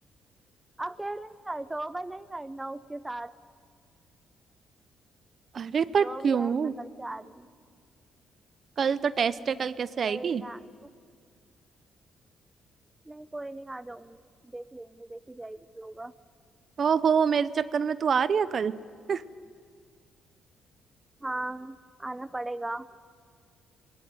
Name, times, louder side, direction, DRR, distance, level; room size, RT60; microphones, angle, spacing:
voice 1, 0.8-3.3 6.0-7.5 10.0-10.6 13.1-16.1 21.2-22.9, right 2 dB, 15° right, 15 dB, 0.6 m, -38 dB
voice 2, 5.5-6.7 8.8-10.4 16.8-18.8 19.1-19.2, right 6 dB, 50° right, 16 dB, 0.7 m, -26 dB
20.5 x 19.0 x 9.6 m, 2.1 s
cardioid pair, 90°, 0 cm